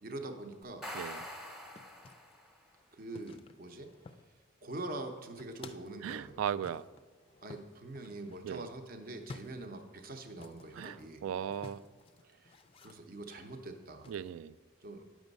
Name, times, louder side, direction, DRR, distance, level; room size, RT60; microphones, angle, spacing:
voice 1, 0.0-0.9 2.9-3.9 4.6-6.5 7.4-11.2 12.2-14.1 14.8-15.1, right 2 dB, 45° right, 5 dB, 0.7 m, -44 dB
sound 1, 0.6-2.6, left 1 dB, 5° right, 0.8 m, -44 dB
sound 2, 1.2-2.3 3.1-4.5 4.7-6.0 6.6-14.3, left 3 dB, 25° left, 0.4 m, -54 dB
voice 2, 6.0-6.8 8.4-8.7 10.7-11.0 11.2-11.8 14.1-14.5, right 8 dB, 80° right, 17 dB, 0.3 m, -37 dB
9.0 x 6.2 x 5.3 m, 1.4 s
head